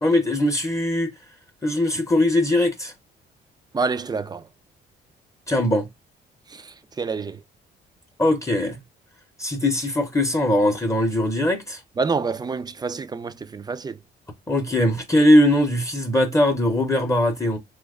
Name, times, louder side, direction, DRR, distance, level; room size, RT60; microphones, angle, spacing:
voice 1, 0.0-1.1 1.6-2.9 5.5-5.9 8.2-8.8 9.4-11.8 14.5-17.6, left 1 dB, 15° left, 0.7 m, -20 dB
voice 2, 3.7-4.4 6.5-7.4 12.0-14.0, right 4 dB, 20° right, 0.3 m, -27 dB
2.9 x 2.2 x 3.5 m
cardioid pair, 90°, 20 cm